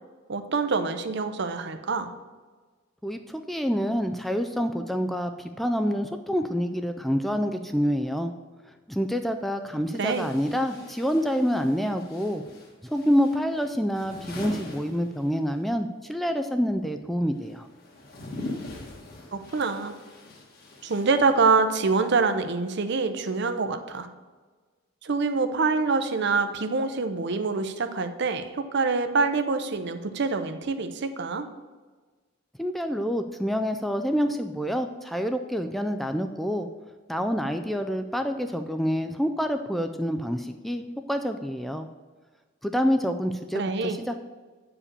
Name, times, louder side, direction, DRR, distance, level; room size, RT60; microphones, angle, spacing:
voice 1, 0.3-2.1 10.0-10.3 19.3-20.0 20.8-24.1 25.0-31.5 43.5-44.0, right 4 dB, 60° right, 9 dB, 0.7 m, -25 dB
voice 2, 3.0-8.3 8.9-12.4 12.8-17.7 32.6-36.7 37.1-40.8 41.1-41.9 42.6-44.2, equal, ahead, 6 dB, 0.3 m, -27 dB
sound 1, 8.9-9.0 9.9-15.7 15.9-21.8, left 2 dB, 50° left, 1.7 m, -42 dB
8.7 x 4.9 x 6.6 m, 1.4 s
head